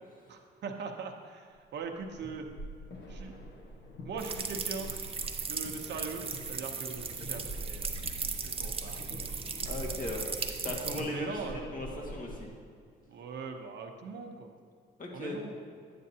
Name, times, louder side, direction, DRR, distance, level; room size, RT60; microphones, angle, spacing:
voice 1, 0.3-2.5 3.1-3.3 4.0-4.9 5.5-7.9 8.4-9.3 10.1-10.2 11.1-12.1 13.1-14.5 15.1-15.6, right 4 dB, 60° right, 3 dB, 0.8 m, -41 dB
sound 1, 1.8-12.6, right 1 dB, 60° left, 1.2 m, -44 dB
sound 2, 4.2-11.0, right 5 dB, 30° right, 0.7 m, -37 dB
voice 2, 9.6-10.3 10.6-12.5 15.0-15.4, left 1 dB, 45° left, -1 dB, 1.7 m, -37 dB
9.8 x 8.6 x 2.8 m, 2.1 s
cardioid pair, 90°, 20 cm